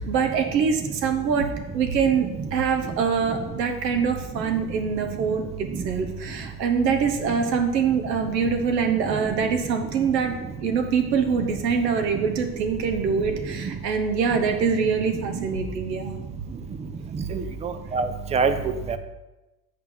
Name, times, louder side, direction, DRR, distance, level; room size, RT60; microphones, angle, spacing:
voice 1, 0.0-1.5 1.7-10.3 10.6-16.1, right 6 dB, 80° right, 5 dB, 1.2 m, -24 dB
voice 2, 17.3-18.5 18.9-19.0, right 5 dB, 15° right, 10 dB, 0.4 m, -25 dB
8.1 x 4.6 x 5.6 m, 1.0 s
hypercardioid pair, 95°, 49 cm